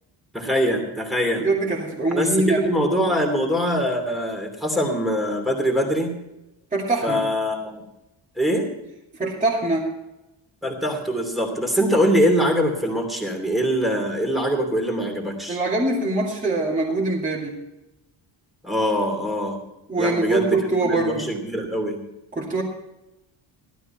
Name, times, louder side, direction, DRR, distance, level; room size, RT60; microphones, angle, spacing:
voice 1, 0.3-1.5 2.1-2.3 2.6-6.1 7.0-7.8 8.4-8.7 10.6-15.6 18.6-19.6 19.9-22.0, equal, ahead, 2 dB, 2.8 m, -23 dB
voice 2, 1.4-2.6 6.7-7.2 9.1-9.9 15.5-17.6 19.9-21.3 22.3-22.6, right 2 dB, 15° right, -4 dB, 2.5 m, -23 dB
15.5 x 13.0 x 4.4 m, 0.92 s
wide cardioid pair, 175°, 47 cm